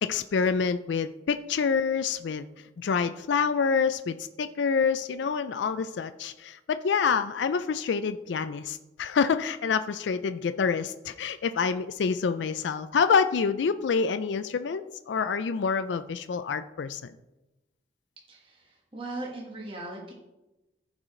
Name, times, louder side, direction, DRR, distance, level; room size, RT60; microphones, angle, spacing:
voice 1, 0.0-2.5 2.8-17.1, left 5 dB, 75° left, 11 dB, 0.4 m, -27 dB
voice 2, 18.3-20.1, right 2 dB, 30° right, -1 dB, 1.4 m, -39 dB
14.5 x 4.8 x 3.8 m, 1.0 s
head